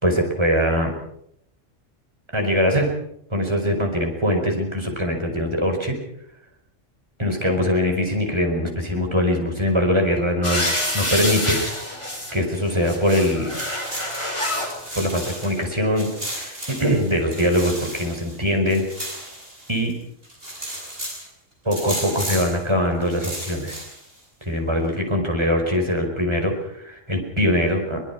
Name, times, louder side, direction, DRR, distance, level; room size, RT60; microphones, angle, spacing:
voice 1, 0.0-0.9 2.3-2.9 3.3-6.0 7.2-10.7 10.9-11.6 12.3-13.5 15.0-18.9 19.7-19.9 21.7-23.8 24.4-28.0, equal, 20° right, 2 dB, 5.2 m, -22 dB
sound 1, 10.4-12.3 12.7-14.7 15.6-15.7, left 1 dB, 25° left, 5.7 m, -26 dB
sound 2, 13.3-15.6 16.0-19.9 20.2-21.3 21.7-22.6 23.0-24.2, right 1 dB, 50° right, 8.3 m, -34 dB
23.5 x 20.5 x 6.0 m, 0.73 s
omnidirectional pair, 1.3 m